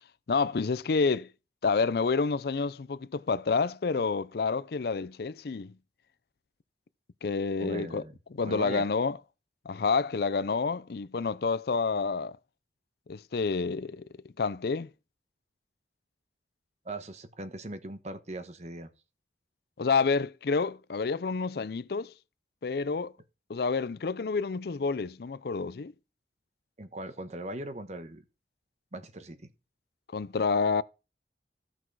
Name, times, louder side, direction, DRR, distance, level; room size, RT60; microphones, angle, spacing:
voice 1, 0.3-1.3 1.6-5.7 7.2-8.0 8.3-9.2 9.7-12.4 13.1-14.1 14.4-14.9 19.8-22.1 22.6-23.1 23.5-25.9 30.1-30.8, left 4 dB, 60° left, 0.5 m, -28 dB
voice 2, 7.6-8.1 8.4-8.9 16.8-18.9 26.8-28.2 28.9-29.5, right 1 dB, 40° right, 1.1 m, -39 dB
14.5 x 6.1 x 4.7 m
head